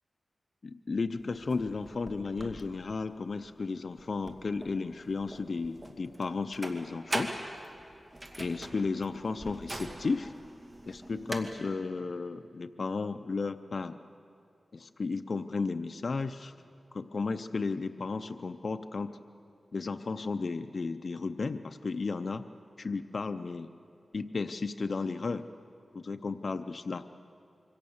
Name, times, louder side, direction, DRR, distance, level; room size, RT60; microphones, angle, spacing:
voice 1, 0.6-7.4 8.4-10.3 10.9-14.0 14.7-16.5 16.9-19.2 19.7-22.5 22.8-23.7 24.1-25.4 25.9-27.1, left 4 dB, 60° left, 9 dB, 0.6 m, -34 dB
sound 1, 1.2-11.4, right 1 dB, 25° right, 2.6 m, -42 dB
26.5 x 24.0 x 7.2 m, 2.5 s
wide cardioid pair, 70°, 0 cm